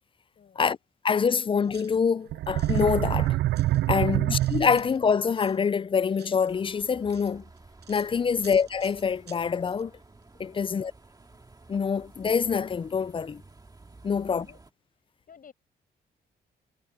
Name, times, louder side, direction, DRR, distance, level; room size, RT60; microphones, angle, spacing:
voice 1, 0.3-0.7 8.2-8.4 10.5-10.9 14.1-14.6 14.9-15.5, left 7 dB, 50° left, 7.4 m, -55 dB
voice 2, 1.0-3.4 3.9-7.4 7.9-9.9 10.4-10.9 11.7-13.4 14.0-14.5, left 6 dB, 30° left, 0.4 m, -25 dB
sound 1, 1.1-1.2 1.6-5.6 6.1-9.8 10.2-10.3, right 9 dB, 70° right, 5.4 m, -54 dB
sound 2, 2.3-5.1, right 15 dB, 90° right, 0.5 m, -25 dB
sound 3, 6.5-14.7, right 3 dB, 20° right, 2.2 m, -53 dB
cardioid pair, 100°, 18 cm